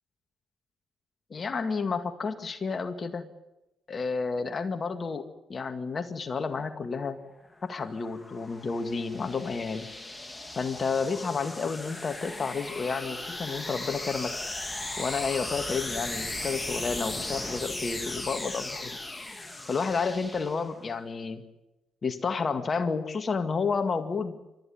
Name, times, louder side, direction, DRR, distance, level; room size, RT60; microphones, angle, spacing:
voice 1, 1.3-3.3 3.9-7.2 7.6-9.9 10.6-14.3 15.0-19.0 19.7-21.4 22.0-24.4, left 5 dB, 45° left, 10 dB, 2.0 m, -31 dB
sound 1, 7.5-20.9, left 2 dB, 20° left, 3.0 m, -37 dB
28.0 x 14.0 x 9.5 m, 0.99 s
hypercardioid pair, 45°, 0 cm